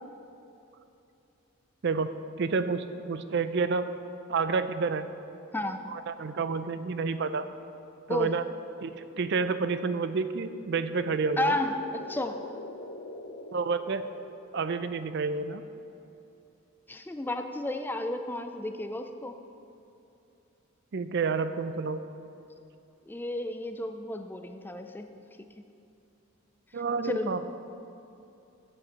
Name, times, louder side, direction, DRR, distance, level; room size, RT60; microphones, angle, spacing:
voice 1, 2.4-3.9 4.3-5.1 5.9-7.4 8.1-8.4 8.8-11.5 13.5-14.0 14.5-15.6 20.9-22.0 26.7-27.5, right 4 dB, 55° right, 11 dB, 0.4 m, -29 dB
sound 1, 10.7-14.9, left 2 dB, 50° left, 0.6 m, -45 dB
voice 2, 11.4-12.4 16.9-19.4 23.1-25.1 27.0-27.3, left 1 dB, 10° left, 7 dB, 0.3 m, -32 dB
9.2 x 7.9 x 5.7 m, 2.7 s
head